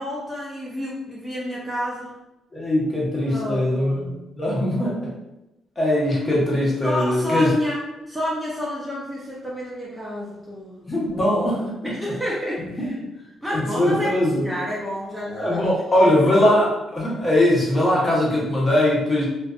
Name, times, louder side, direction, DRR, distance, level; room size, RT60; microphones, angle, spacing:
voice 1, 0.0-2.2 3.3-4.3 6.8-7.8 8.1-10.9 11.8-13.1 13.4-15.7 16.0-16.1, equal, 5° right, -6 dB, 0.5 m, -29 dB
voice 2, 2.5-4.1 4.4-5.1 5.8-7.5 10.9-11.7 12.8-12.9 13.5-14.4 15.4-19.2, left 1 dB, 25° left, -5 dB, 1.0 m, -20 dB
2.4 x 2.3 x 2.4 m, 0.96 s
cardioid pair, 90°, 0 cm